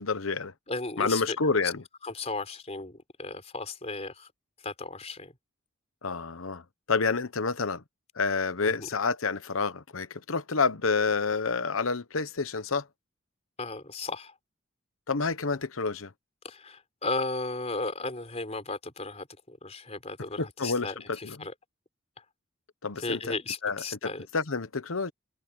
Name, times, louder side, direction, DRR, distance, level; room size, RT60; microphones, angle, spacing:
voice 1, 0.0-0.5 1.0-1.8 6.0-6.6 6.9-7.8 8.2-12.9 15.1-16.1 20.4-21.4 22.8-23.2 23.6-25.1, left 4 dB, 80° left, 1.1 m, -29 dB
voice 2, 0.7-1.4 1.6-1.7 2.0-4.3 4.6-5.3 8.6-8.9 13.6-14.3 16.4-21.5 22.2-22.3 23.0-24.3, left 3 dB, 30° left, 4.1 m, -35 dB
head